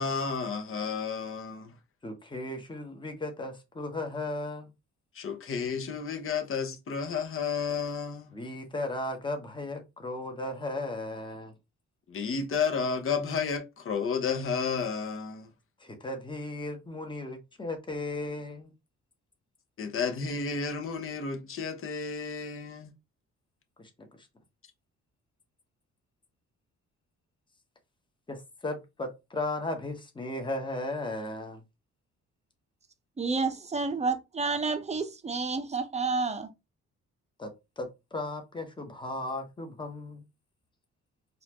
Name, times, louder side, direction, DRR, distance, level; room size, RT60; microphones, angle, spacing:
voice 1, 0.0-1.7 5.1-8.3 12.1-15.5 19.8-22.9, left 5 dB, 45° left, 0.9 m, -32 dB
voice 2, 2.0-4.7 8.3-11.5 15.8-18.7 23.8-24.1 28.3-31.6 37.4-37.5 37.8-40.2, left 2 dB, 15° left, 1.1 m, -36 dB
voice 3, 33.2-36.5, right 4 dB, 20° right, 0.7 m, -30 dB
4.1 x 2.5 x 2.9 m
cardioid pair, 90°, 30 cm